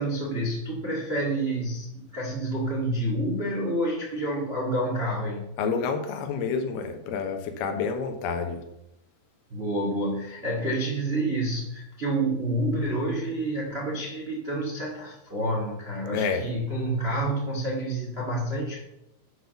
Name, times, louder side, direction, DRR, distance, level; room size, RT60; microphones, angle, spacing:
voice 1, 0.0-5.5 9.5-18.8, right 1 dB, 70° right, -3 dB, 0.6 m, -28 dB
voice 2, 5.6-8.6 16.1-16.4, left 5 dB, 75° left, 6 dB, 2.8 m, -28 dB
8.0 x 6.0 x 6.9 m, 0.86 s
omnidirectional pair, 4.8 m